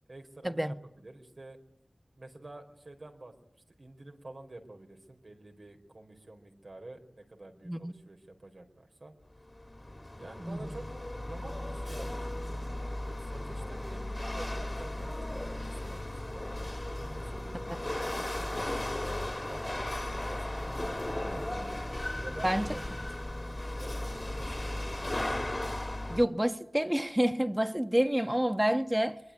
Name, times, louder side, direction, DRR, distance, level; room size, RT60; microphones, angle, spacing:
voice 1, 0.1-1.6 2.2-3.3 3.8-9.1 10.2-10.9 11.2-12.7 13.2-16.5 17.0-19.2 19.5-21.8 22.2-22.8 23.8-25.3, right 2 dB, 70° right, 4.5 m, -49 dB
Chatter / Hiss / Rattle, 9.4-26.3, left 1 dB, 35° left, 2.1 m, -36 dB
voice 2, 26.1-29.2, equal, 15° right, 1.6 m, -28 dB
23.0 x 22.5 x 9.9 m
wide cardioid pair, 50°, 0 cm